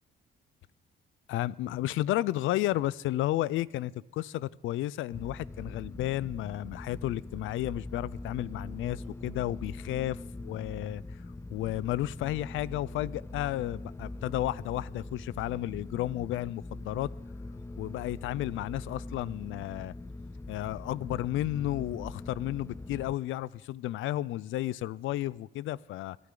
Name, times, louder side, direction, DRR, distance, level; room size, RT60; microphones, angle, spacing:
voice 1, 1.3-10.2 10.4-11.0 11.5-17.1 17.8-19.9 20.5-26.2, left 15 dB, 80° left, 0.4 m, -32 dB
sound 1, 5.1-23.1, left 2 dB, 15° left, 0.5 m, -42 dB
22.0 x 12.0 x 3.8 m
cardioid pair, 90°, 20 cm